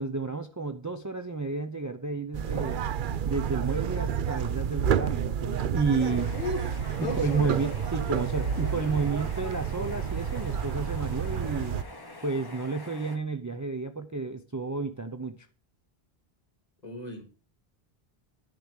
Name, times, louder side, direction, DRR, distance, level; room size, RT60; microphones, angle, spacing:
voice 1, 0.0-2.8 3.3-6.3 7.0-11.8 12.2-15.3, right 4 dB, 20° right, 0.6 m, -31 dB
sound 1, 2.3-11.8, right 8 dB, 60° right, 0.7 m, -30 dB
sound 2, 6.0-13.2, left 1 dB, 20° left, 1.3 m, -45 dB
voice 2, 6.3-7.6 16.8-17.2, left 1 dB, 40° left, 2.6 m, -36 dB
10.5 x 5.0 x 8.1 m
omnidirectional pair, 1.0 m